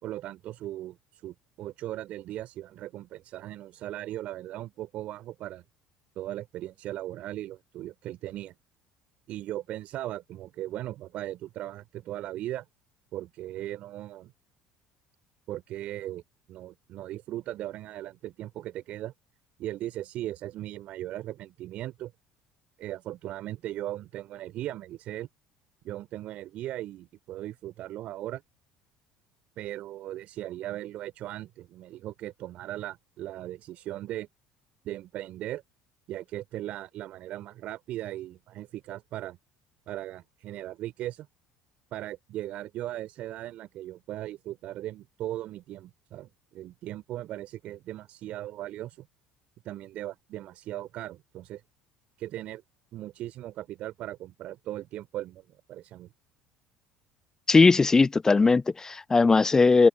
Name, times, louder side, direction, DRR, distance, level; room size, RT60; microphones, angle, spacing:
voice 1, 0.0-5.6 6.2-8.5 9.3-12.6 13.1-14.3 15.5-16.2 16.5-19.1 19.6-22.1 22.8-25.3 25.8-28.4 29.6-34.3 34.8-35.6 36.1-39.4 39.9-41.3 41.9-49.1 49.6-51.6 52.2-52.6 52.9-56.1, right 14 dB, 55° right, 4.1 m, -38 dB
voice 2, 57.5-59.9, left 4 dB, 20° left, 0.6 m, -19 dB
hypercardioid pair, 65°, 3 cm